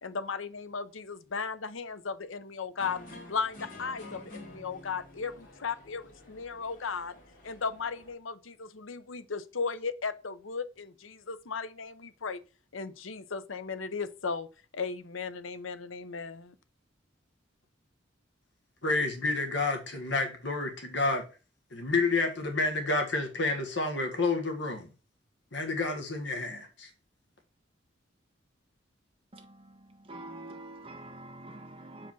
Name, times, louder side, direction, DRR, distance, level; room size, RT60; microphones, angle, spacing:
voice 1, 0.0-7.1 7.4-12.4 12.7-14.5 14.7-16.5, left 5 dB, 90° left, 0.8 m, -36 dB
sound 1, 2.8-8.1, left 2 dB, 45° left, 2.8 m, -49 dB
voice 2, 18.8-21.2 21.7-24.9 25.5-26.9, left 3 dB, 65° left, 1.8 m, -29 dB
voice 3, 30.1-32.1, right 2 dB, 30° right, 1.3 m, -45 dB
6.9 x 4.9 x 6.2 m
head